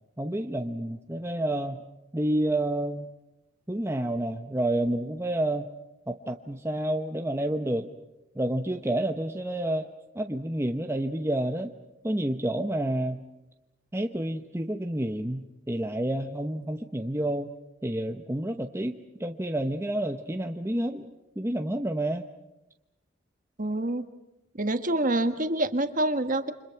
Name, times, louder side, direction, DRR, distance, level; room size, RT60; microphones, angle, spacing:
voice 1, 0.2-1.8 2.1-3.1 3.7-5.7 6.1-7.9 8.3-9.9 10.1-11.7 12.0-13.2 13.9-17.5 17.8-18.9 19.2-21.1 21.4-22.2, right 1 dB, 15° right, 5 dB, 0.9 m, -29 dB
voice 2, 23.6-24.0 24.5-26.5, right 1 dB, 40° right, 9 dB, 1.5 m, -26 dB
29.0 x 26.0 x 5.9 m, 0.94 s
head